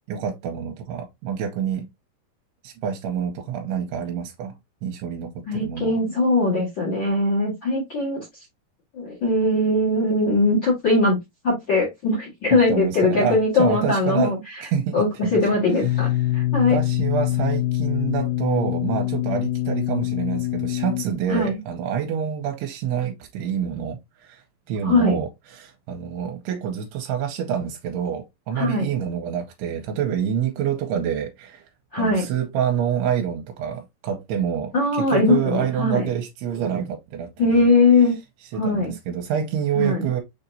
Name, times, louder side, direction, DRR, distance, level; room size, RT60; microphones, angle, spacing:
voice 1, 0.1-1.9 2.6-4.6 4.8-6.0 12.5-14.3 14.6-16.0 16.7-31.7 32.0-37.7 38.5-40.2, right 8 dB, 80° right, 2.7 m, -27 dB
voice 2, 5.5-8.2 8.9-11.2 11.4-14.4 14.9-16.8 21.3-21.6 24.8-25.2 28.5-28.9 31.9-32.2 34.7-36.1 37.4-38.1 38.6-38.9 39.7-40.1, left 2 dB, 50° left, 1.5 m, -20 dB
sound 1, 15.8-21.1, left 15 dB, 85° left, 2.8 m, -24 dB
6.8 x 2.9 x 2.6 m
omnidirectional pair, 4.8 m